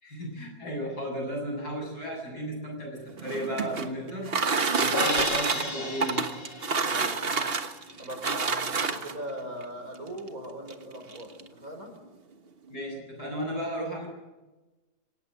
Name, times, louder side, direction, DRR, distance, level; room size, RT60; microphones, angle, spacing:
voice 1, 0.0-4.3 4.7-6.3 12.7-14.1, equal, 75° left, 1 dB, 8.2 m, -34 dB
sound 1, 3.1-9.3 10.2-10.3 10.7-10.8 11.1-11.5, right 4 dB, 40° right, 1.4 m, -28 dB
Crash cymbal, 4.9-7.2, left 3 dB, 35° left, 2.4 m, -33 dB
voice 2, 6.8-7.6 8.0-11.9, equal, 60° right, 4 dB, 5.6 m, -40 dB
25.5 x 17.5 x 6.5 m, 1.1 s
omnidirectional pair, 1.7 m